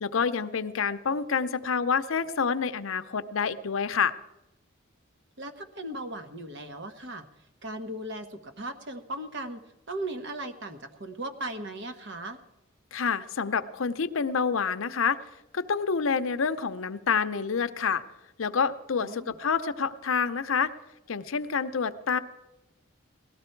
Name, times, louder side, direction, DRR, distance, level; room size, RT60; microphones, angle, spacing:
voice 1, 0.0-4.2 12.9-15.2 15.5-18.0 18.4-20.7 21.1-22.2, left 6 dB, 75° left, 11 dB, 0.7 m, -28 dB
voice 2, 5.4-7.3 7.6-12.4 19.0-19.3, right 1 dB, 55° right, 7 dB, 1.2 m, -37 dB
18.0 x 13.0 x 4.5 m, 0.94 s
head